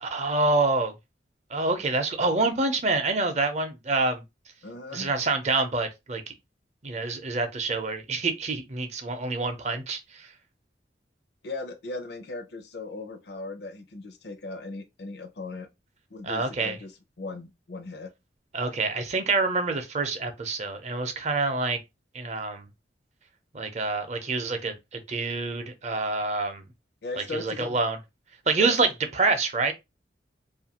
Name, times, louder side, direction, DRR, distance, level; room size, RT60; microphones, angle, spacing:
voice 1, 0.0-0.9 1.5-4.2 4.9-6.3 6.8-10.3 16.2-16.8 18.5-21.8 22.1-22.7 23.5-26.6 27.2-28.0 28.5-29.7, right 3 dB, 40° right, 0.6 m, -27 dB
voice 2, 4.6-5.1 11.4-15.7 16.1-16.9 17.2-18.1 27.0-27.8 28.6-28.7, left 3 dB, 65° left, 0.6 m, -38 dB
2.6 x 2.5 x 2.8 m
head